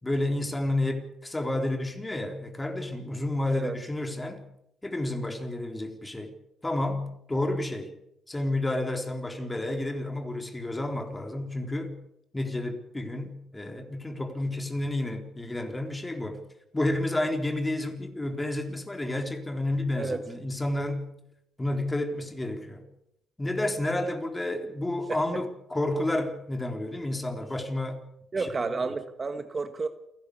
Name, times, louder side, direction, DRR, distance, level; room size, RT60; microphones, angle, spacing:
voice 1, 0.0-4.4 4.8-6.3 6.6-7.9 8.3-12.0 12.3-16.4 16.7-21.1 21.6-22.9 23.4-28.0, left 1 dB, 15° left, 3.7 m, -30 dB
voice 2, 28.3-29.9, right 4 dB, 35° right, 1.6 m, -31 dB
29.0 x 11.5 x 8.3 m
cardioid pair, 90°, 0 cm